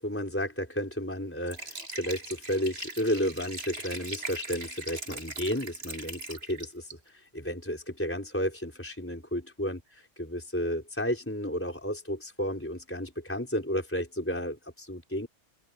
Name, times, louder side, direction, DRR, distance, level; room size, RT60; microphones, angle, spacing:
voice 1, 0.0-9.8 10.2-15.3, equal, 10° left, 4.1 m, -32 dB
Liquid, 1.4-6.9, right 1 dB, 70° right, 4.7 m, -40 dB
open air
omnidirectional pair, 1.1 m